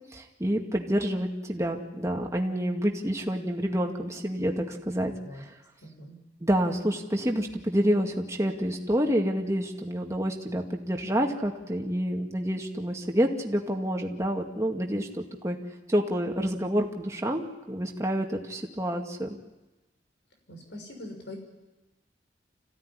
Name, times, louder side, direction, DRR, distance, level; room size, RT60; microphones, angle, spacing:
voice 1, 0.1-5.5 6.4-15.6 15.9-19.4, equal, 15° right, 1 dB, 2.2 m, -28 dB
voice 2, 5.8-6.2 20.5-21.4, left 1 dB, 80° left, 3 dB, 6.3 m, -42 dB
27.0 x 16.0 x 9.9 m, 1.1 s
head